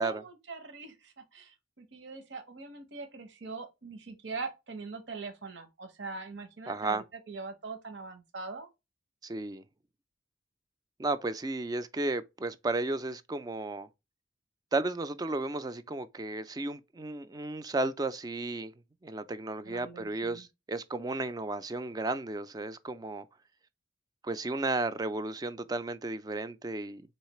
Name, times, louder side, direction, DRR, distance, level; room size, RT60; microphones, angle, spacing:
voice 1, 0.0-8.7 19.6-20.5, right 4 dB, 65° right, 0.8 m, -42 dB
voice 2, 6.7-7.0 9.2-9.6 11.0-13.9 14.7-18.7 19.0-23.3 24.2-27.0, right 2 dB, 20° right, 0.3 m, -33 dB
4.0 x 3.2 x 3.0 m
head